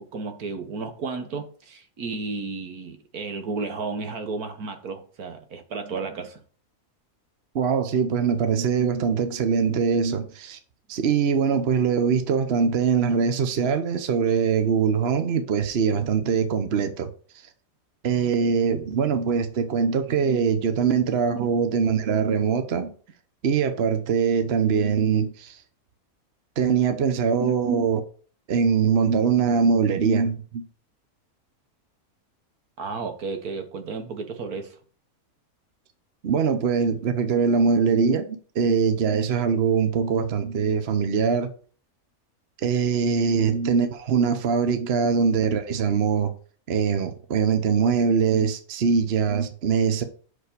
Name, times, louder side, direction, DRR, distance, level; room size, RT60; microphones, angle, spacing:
voice 1, 0.0-6.4 21.3-21.6 27.4-27.9 32.8-34.8 43.3-43.4, right 4 dB, 85° right, 1.8 m, -33 dB
voice 2, 7.5-10.6 10.9-17.1 18.0-22.9 23.4-25.6 26.6-28.0 28.5-30.6 36.2-41.5 42.6-46.3 46.7-50.0, right 6 dB, 50° right, 1.1 m, -22 dB
6.2 x 5.2 x 6.8 m
omnidirectional pair, 1.5 m